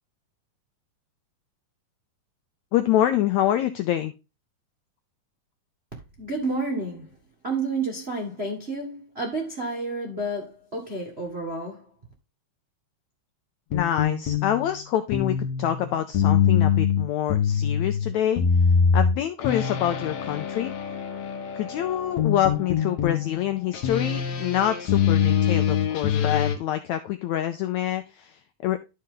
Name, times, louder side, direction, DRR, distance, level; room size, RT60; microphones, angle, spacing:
voice 1, 2.7-4.1 13.7-18.4 18.9-20.7 21.5-28.8, left 11 dB, 80° left, 1.6 m, -26 dB
voice 2, 6.2-7.1 7.4-11.8, right 2 dB, 50° right, 0.7 m, -30 dB
sound 1, 13.7-26.6, left 7 dB, 65° left, 2.1 m, -24 dB
12.5 x 4.3 x 3.7 m
omnidirectional pair, 3.9 m